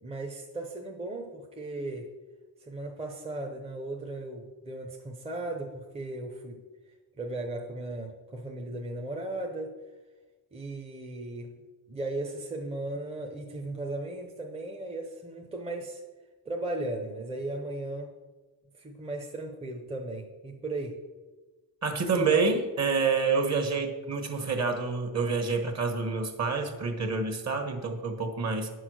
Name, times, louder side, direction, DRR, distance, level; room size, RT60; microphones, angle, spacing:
voice 1, 0.0-2.1 2.6-6.6 7.2-9.7 10.5-11.6 11.9-16.0 16.4-18.1 18.8-21.0, right 2 dB, 15° right, 1 dB, 0.7 m, -36 dB
voice 2, 21.8-28.7, right 4 dB, 40° right, 5 dB, 1.4 m, -28 dB
9.7 x 6.3 x 6.3 m, 1.3 s
wide cardioid pair, 170°, 40 cm